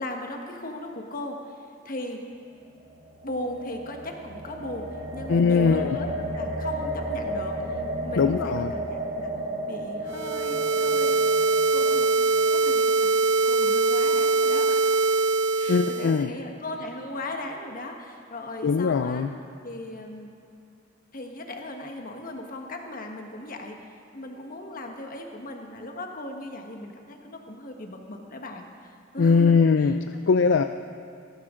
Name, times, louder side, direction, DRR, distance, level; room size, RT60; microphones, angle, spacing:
voice 1, 0.0-2.2 3.2-9.3 9.7-13.1 13.4-14.9 15.6-19.2 19.6-20.3 21.1-23.8 24.1-29.6, left 1 dB, 45° left, 3 dB, 1.4 m, -37 dB
sound 1, 2.8-13.0, right 1 dB, 35° right, 1.8 m, -33 dB
voice 2, 5.3-6.0 8.2-8.7 15.7-16.3 18.6-19.3 29.2-30.6, left 5 dB, 65° left, 9 dB, 0.4 m, -21 dB
sound 2, 10.1-16.3, right 3 dB, 70° right, 0.6 m, -22 dB
19.0 x 13.5 x 3.8 m, 2.5 s
head